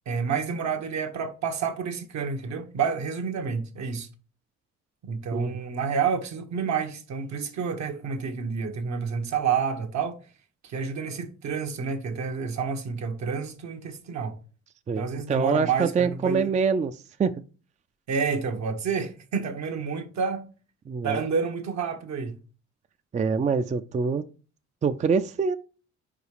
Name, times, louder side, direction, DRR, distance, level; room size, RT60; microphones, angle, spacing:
voice 1, 0.1-4.1 5.0-10.2 10.6-14.4 15.0-16.5 18.1-20.4 21.0-22.4, right 6 dB, 65° right, 1.1 m, -29 dB
voice 2, 14.9-17.4 20.9-21.2 23.1-24.2 24.8-25.6, right 5 dB, 25° right, 0.4 m, -25 dB
5.0 x 4.8 x 4.9 m
cardioid pair, 90°, 30 cm